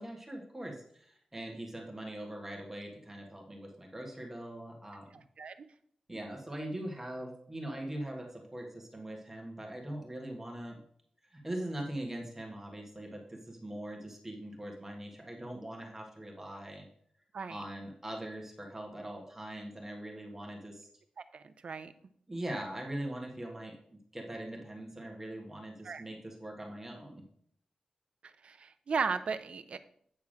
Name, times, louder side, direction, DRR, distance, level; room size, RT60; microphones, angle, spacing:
voice 1, 0.0-5.1 6.1-10.8 11.3-16.9 17.5-20.9 22.3-27.2, right 1 dB, 15° right, 1 dB, 1.5 m, -41 dB
voice 2, 5.1-5.7 17.3-17.6 21.3-21.9 25.8-26.0 28.4-29.8, right 5 dB, 60° right, 11 dB, 0.5 m, -36 dB
8.7 x 3.6 x 6.4 m, 0.65 s
wide cardioid pair, 120°, 2 cm